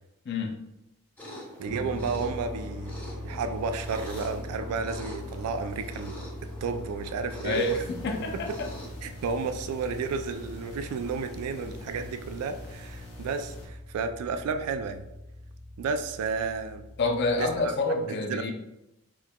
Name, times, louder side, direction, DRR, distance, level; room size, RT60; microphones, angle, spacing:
voice 1, 0.3-0.6 7.4-8.7 17.0-18.5, left 2 dB, 50° left, 4 dB, 0.4 m, -28 dB
sound 1, 1.2-8.9, equal, 10° left, 0.6 m, -44 dB
voice 2, 1.6-3.0 3.2-7.8 8.3-8.6 9.0-15.1 15.8-16.8 17.4-17.7 18.1-18.5, right 5 dB, 80° right, 8 dB, 0.3 m, -32 dB
sound 2, 1.7-17.7, left 1 dB, 20° right, 1.0 m, -42 dB
sound 3, 7.5-13.7, left 2 dB, 85° left, 0.8 m, -46 dB
4.4 x 2.9 x 2.2 m, 0.92 s
head